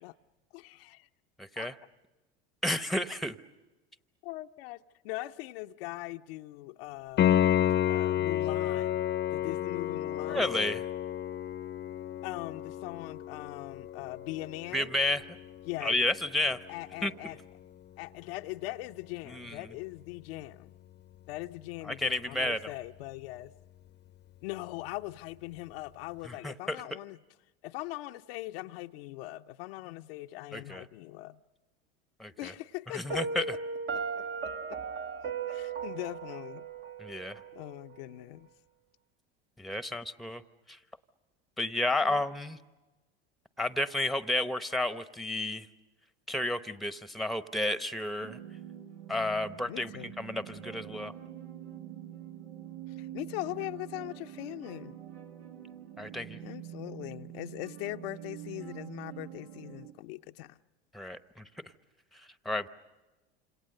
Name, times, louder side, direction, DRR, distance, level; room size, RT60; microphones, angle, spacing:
voice 1, 0.5-1.1 1.6-1.7 4.2-7.5 7.9-9.0 9.3-10.6 12.2-14.9 15.6-16.0 16.7-17.4 18.0-20.7 21.3-23.5 24.4-27.2 27.6-31.4 32.4-33.2 33.5-33.6 33.9-34.2 34.7-34.8 35.2-36.7 37.5-38.5 42.0-42.2 49.7-50.1 52.9-55.0 56.4-60.6, left 18 dB, 70° left, 0.8 m, -41 dB
voice 2, 1.4-1.7 2.6-3.4 10.3-10.8 14.7-15.2 15.8-16.6 17.0-17.1 19.3-19.5 22.0-22.6 26.3-26.8 30.5-30.8 32.2-32.5 32.9-33.4 37.0-37.4 39.6-40.4 40.7-40.8 41.6-42.6 43.6-45.7 46.3-48.4 49.1-49.9 50.2-51.1 56.0-56.4 60.9-61.4 62.4-62.7, left 1 dB, ahead, 1.0 m, -31 dB
Piano, 7.2-17.8 21.1-21.2, left 11 dB, 35° left, 0.8 m, -31 dB
Piano 2, 33.1-38.0, right 5 dB, 40° right, 1.0 m, -37 dB
sound 1, 48.2-59.9, right 11 dB, 85° right, 2.2 m, -45 dB
28.0 x 27.0 x 6.7 m
hypercardioid pair, 90°, 31 cm